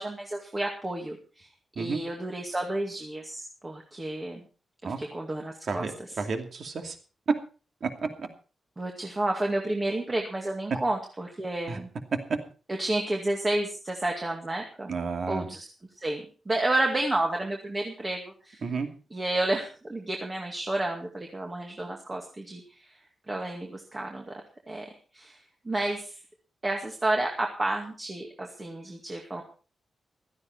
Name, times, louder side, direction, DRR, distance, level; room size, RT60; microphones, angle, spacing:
voice 1, 0.0-1.5 1.8-4.4 4.8-6.2 8.8-11.9 12.8-14.9 15.3-15.7 16.0-18.6 19.1-22.8 23.3-24.4 24.7-25.4 25.6-26.1 26.6-29.4, right 1 dB, 20° right, 1 dB, 2.1 m, -31 dB
voice 2, 5.7-7.0 7.8-7.9 8.2-8.3 11.7-11.8 14.9-15.5 18.6-18.9, right 4 dB, 50° right, 5 dB, 2.5 m, -32 dB
16.0 x 13.5 x 4.5 m, 0.36 s
wide cardioid pair, 170°, 0 cm